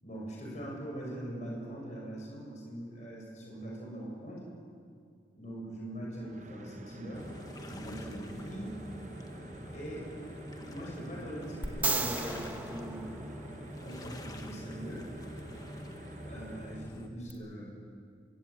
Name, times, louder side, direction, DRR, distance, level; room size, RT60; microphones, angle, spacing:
voice 1, 0.0-4.4 5.4-7.3 7.6-8.7 9.7-10.1 10.7-13.1 13.8-15.1 16.3-17.7, right 1 dB, 40° left, -2 dB, 7.5 m, -42 dB
sound 1, 6.2-16.9, right 2 dB, 40° right, 1.1 m, -49 dB
sound 2, 7.1-17.1, left 1 dB, 20° left, 1.4 m, -46 dB
sound 3, 11.6-13.9 17.3-17.4, right 3 dB, 10° right, 1.3 m, -34 dB
25.5 x 23.0 x 8.8 m, 2.2 s
head